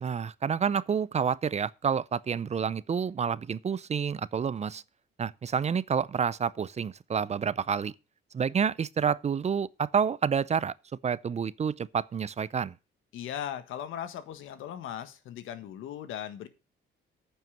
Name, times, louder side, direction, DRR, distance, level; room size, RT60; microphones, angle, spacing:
voice 1, 0.0-4.8 5.2-7.9 8.3-10.7 11.0-12.7, right 7 dB, 35° right, 0.5 m, -29 dB
voice 2, 13.1-16.5, left 10 dB, 85° left, 1.4 m, -38 dB
9.2 x 5.6 x 7.4 m
cardioid pair, 90°, 20 cm